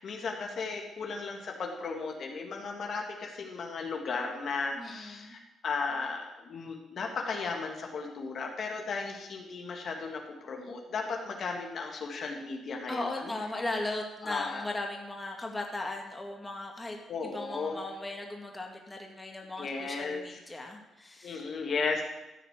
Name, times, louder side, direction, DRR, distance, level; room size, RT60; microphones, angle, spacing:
voice 1, 0.0-13.3 14.2-14.6 17.1-17.8 19.6-20.4 21.2-22.0, left 4 dB, 55° left, 1 dB, 1.9 m, -35 dB
voice 2, 4.8-5.4 12.9-17.0 17.2-21.5, left 2 dB, 15° left, 1 dB, 2.1 m, -37 dB
14.0 x 5.0 x 8.2 m, 0.96 s
cardioid pair, 90°, 0 cm